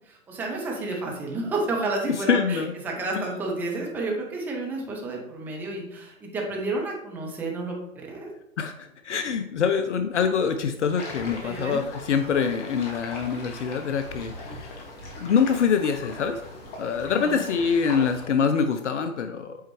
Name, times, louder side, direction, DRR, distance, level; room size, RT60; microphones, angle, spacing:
voice 1, 0.1-7.7 8.1-8.3 11.4-11.8 17.1-17.4, right 2 dB, 5° right, -1 dB, 0.5 m, -31 dB
voice 2, 2.3-2.7 3.2-3.3 8.6-14.8 15.2-16.4 16.8-19.6, left 6 dB, 60° left, 8 dB, 0.6 m, -25 dB
sound 1, 11.0-18.3, left 2 dB, 25° left, 1.3 m, -40 dB
8.0 x 4.4 x 3.1 m, 0.83 s
figure-of-eight pair, 130°, 41 cm